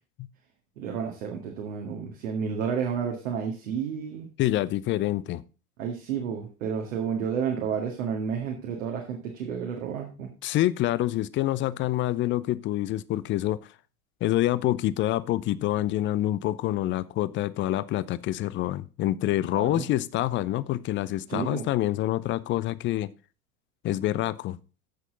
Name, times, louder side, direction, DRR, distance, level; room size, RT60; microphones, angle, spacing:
voice 1, 0.8-4.3 5.8-10.3 19.5-19.9 21.3-21.6, right 7 dB, 65° right, 2.1 m, -31 dB
voice 2, 4.4-5.4 10.4-13.6 14.2-23.1 23.8-24.6, left 14 dB, 30° left, 0.5 m, -26 dB
14.5 x 6.3 x 3.9 m
figure-of-eight pair, 75°, 43 cm